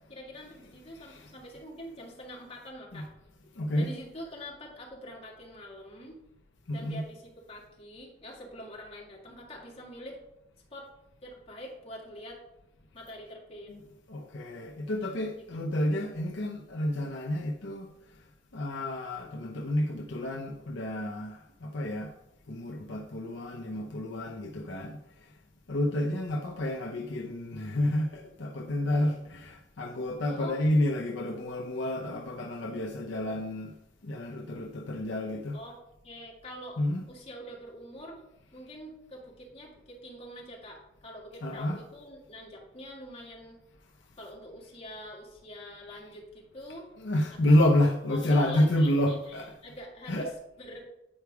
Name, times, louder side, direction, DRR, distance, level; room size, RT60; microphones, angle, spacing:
voice 1, 0.1-3.1 3.7-6.2 6.7-10.2 10.7-10.9 11.2-12.4 12.9-13.7 15.4-15.5 30.3-30.6 35.5-35.8 36.0-36.8 37.1-38.2 38.5-43.6 44.2-46.9 47.4-47.6 48.1-50.9, equal, 35° left, 2.1 m, -45 dB
voice 2, 0.9-1.3 2.9-3.1 3.5-3.9 6.7-7.0 13.7-13.8 14.1-17.9 18.5-22.1 22.5-25.3 25.7-33.8 34.0-35.6 36.8-37.0 41.4-41.8 47.0-49.5 50.1-50.3, left 1 dB, 70° left, 0.8 m, -29 dB
8.8 x 4.7 x 4.7 m
head